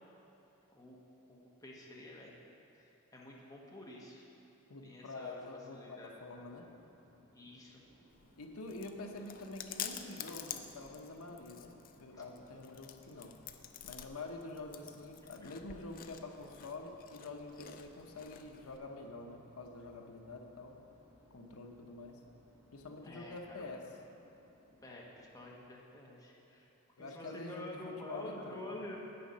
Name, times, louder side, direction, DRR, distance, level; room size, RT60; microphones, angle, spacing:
voice 1, 1.3-2.4 2.7-4.3 4.8-6.2 7.3-7.8 12.1-12.2 15.4-15.5 23.0-23.7 24.8-26.7 27.0-29.0, left 1 dB, 15° left, -3 dB, 1.2 m, -49 dB
voice 2, 4.7-6.7 8.4-13.4 13.8-20.8 21.3-22.2 22.7-23.9 27.0-28.8, left 2 dB, 80° left, 3 dB, 0.8 m, -47 dB
sound 1, 6.2-25.7, left 1 dB, 55° right, 1.2 m, -68 dB
sound 2, 7.8-23.8, right 1 dB, 20° right, 1.9 m, -69 dB
Chewing mastication, 8.1-18.8, left 9 dB, 40° left, 0.4 m, -49 dB
8.3 x 6.8 x 5.5 m, 2.9 s
head